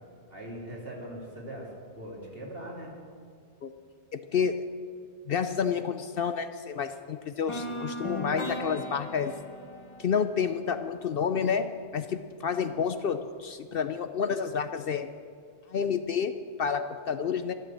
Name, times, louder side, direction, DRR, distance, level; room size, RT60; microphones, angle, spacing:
voice 1, 0.3-2.9, right 1 dB, 55° right, -3 dB, 3.2 m, -41 dB
voice 2, 4.1-4.6 5.3-9.3 10.0-15.1 15.7-16.3 16.6-17.5, left 6 dB, 60° left, 9 dB, 0.7 m, -29 dB
sound 1, 7.5-11.4, equal, 25° left, 1.2 m, -38 dB
12.5 x 12.0 x 7.6 m, 2.2 s
omnidirectional pair, 1.2 m